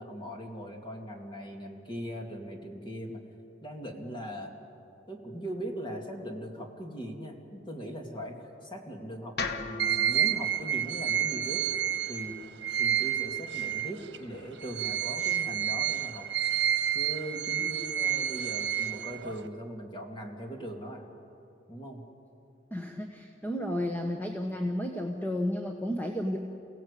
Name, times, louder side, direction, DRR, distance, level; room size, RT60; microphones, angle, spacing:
voice 1, 0.0-3.2 3.6-4.6 5.1-11.6 12.1-12.3 12.8-16.3 16.9-21.1 21.7-22.0, equal, 25° left, 2 dB, 2.7 m, -40 dB
sound 1, 9.4-13.5, left 4 dB, 60° left, 1.4 m, -41 dB
sound 2, 9.8-14.2 14.6-19.5, right 10 dB, 75° right, 1.2 m, -30 dB
voice 2, 22.7-26.4, left 1 dB, 10° left, 2 dB, 1.2 m, -32 dB
28.5 x 17.5 x 8.4 m, 2.8 s
head